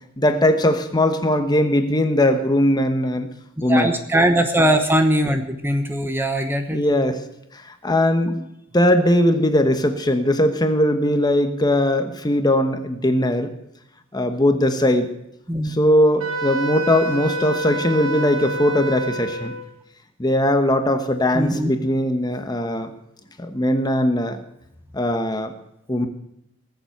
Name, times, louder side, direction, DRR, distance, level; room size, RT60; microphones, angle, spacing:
voice 1, 0.2-3.3 3.6-3.9 6.7-7.2 7.5-8.5 8.7-13.5 14.1-15.1 15.6-19.5 20.2-22.9 23.4-24.4 24.9-25.5 25.9-26.1, left 1 dB, 20° left, 7 dB, 1.1 m, -19 dB
voice 2, 3.7-6.8 15.5-15.8 21.3-21.7, right 1 dB, 10° right, 7 dB, 1.0 m, -20 dB
Wind instrument woodwind instrument, 16.2-19.7, right 1 dB, 75° right, 3.1 m, -27 dB
19.5 x 7.3 x 7.8 m, 0.81 s
head